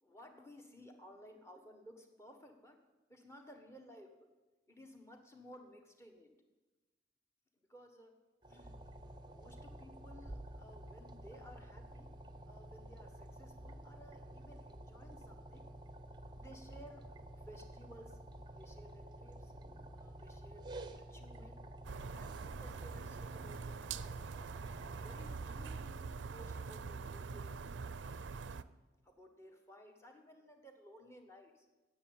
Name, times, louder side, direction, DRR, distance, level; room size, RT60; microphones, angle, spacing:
voice 1, 0.0-2.8 3.1-4.3 4.7-6.3 7.7-8.1 8.5-8.7 9.3-12.1 12.4-15.7 16.3-17.0 17.4-18.2 18.6-19.5 19.9-21.6 22.1-24.2 25.0-27.5 28.0-28.3 29.0-31.6, equal, 15° left, 4 dB, 1.4 m, -57 dB
sound 1, 8.4-25.9, right 1 dB, 25° right, 0.6 m, -51 dB
sound 2, 21.8-28.6, right 5 dB, 85° right, 0.5 m, -44 dB
10.0 x 8.0 x 8.5 m, 1.2 s
head